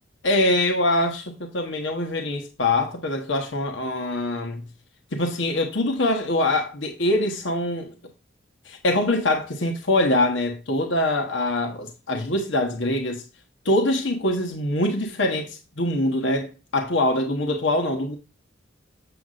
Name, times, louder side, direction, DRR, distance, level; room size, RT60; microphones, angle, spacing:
voice 1, 0.2-4.6 5.1-7.9 8.7-13.2 13.6-18.2, left 1 dB, 75° left, 1.2 m, -24 dB
7.9 x 6.8 x 2.5 m
head